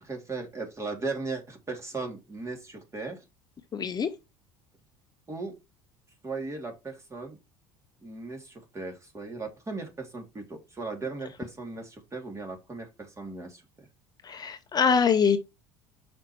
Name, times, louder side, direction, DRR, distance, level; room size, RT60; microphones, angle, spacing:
voice 1, 0.0-3.2 5.3-5.5 6.2-7.4 8.0-13.9, right 3 dB, 25° right, 2.9 m, -37 dB
voice 2, 3.7-4.1 14.2-15.4, left 6 dB, 30° left, 0.8 m, -24 dB
5.8 x 5.2 x 4.5 m
hypercardioid pair, 70°, 13 cm